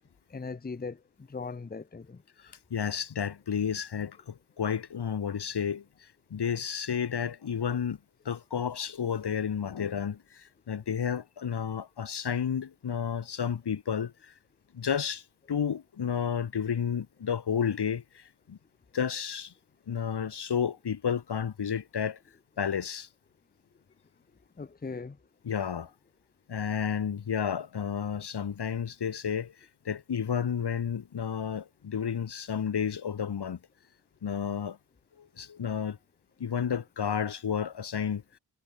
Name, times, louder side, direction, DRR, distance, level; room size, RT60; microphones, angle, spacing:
voice 1, 0.3-2.2 24.6-25.2, left 4 dB, 25° left, 0.9 m, -39 dB
voice 2, 2.4-5.8 6.3-8.0 8.3-14.3 14.7-15.2 15.5-18.6 18.9-19.5 19.9-22.2 22.6-23.1 25.4-25.9 26.5-29.5 29.9-33.6 34.2-34.8 35.2-36.0 36.4-38.2, left 7 dB, 75° left, 2.3 m, -31 dB
wide cardioid pair, 150°, 40 cm